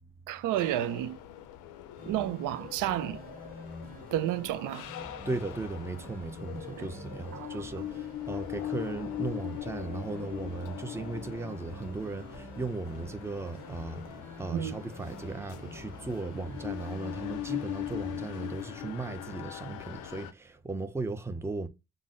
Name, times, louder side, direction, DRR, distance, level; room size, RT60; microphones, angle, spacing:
voice 1, 0.3-1.2 2.1-3.2 4.1-4.9 6.8-6.9 7.3-7.5 14.5-14.8, right 12 dB, 90° right, 0.5 m, -31 dB
sound 1, 0.6-20.3, left 12 dB, 90° left, 0.5 m, -41 dB
sound 2, 2.0-18.5, equal, 30° right, 1.5 m, -48 dB
voice 2, 5.1-21.7, right 3 dB, 10° right, 0.5 m, -37 dB
3.9 x 2.0 x 3.7 m
cardioid pair, 90°, 30 cm